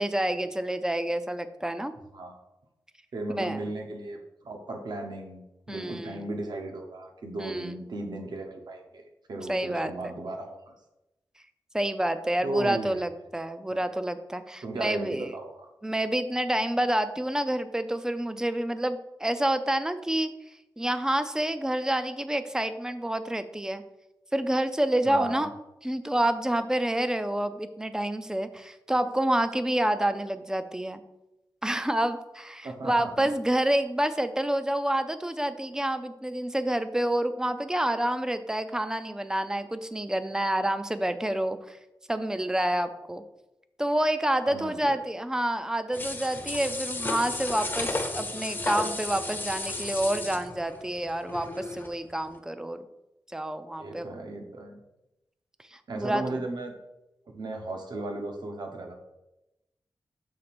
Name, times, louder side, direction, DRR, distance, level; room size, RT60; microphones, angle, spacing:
voice 1, 0.0-1.9 3.4-3.6 5.7-6.3 7.4-7.8 9.5-10.1 11.7-15.3 15.8-20.3 20.8-23.8 24.3-25.5 25.8-31.0 31.6-41.8 42.1-43.2 43.8-52.9 53.3-54.1 55.7-56.4, right 1 dB, 10° right, 10 dB, 0.4 m, -28 dB
voice 2, 3.1-9.0 9.3-10.7 12.4-13.0 14.6-15.7 25.1-25.5 32.6-33.1 44.4-45.0 53.8-54.8 55.9-56.8 57.3-58.9, right 2 dB, 65° right, 3 dB, 0.9 m, -36 dB
sound 1, 45.9-51.9 52.3-52.4, left 2 dB, 25° left, 0.7 m, -34 dB
6.4 x 3.4 x 5.9 m, 0.94 s
wide cardioid pair, 170°, 8 cm